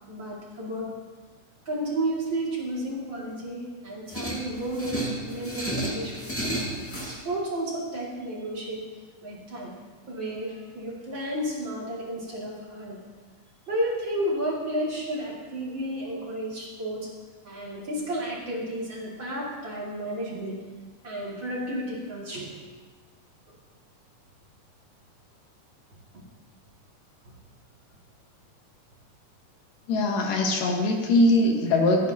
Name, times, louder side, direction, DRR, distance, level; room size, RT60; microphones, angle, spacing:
voice 1, 0.1-0.9 1.6-6.3 7.0-8.8 9.2-9.7 10.1-13.0 13.7-17.1 17.4-20.6 21.0-22.7 23.5-23.6 26.1-26.2 27.2-27.3, right 1 dB, 35° right, -5 dB, 3.0 m, -32 dB
sound 1, 4.1-7.2, right 1 dB, 5° left, 1.0 m, -32 dB
voice 2, 29.9-32.1, left 1 dB, 85° left, 1 dB, 3.2 m, -22 dB
26.5 x 10.0 x 2.9 m, 1.4 s
omnidirectional pair, 3.8 m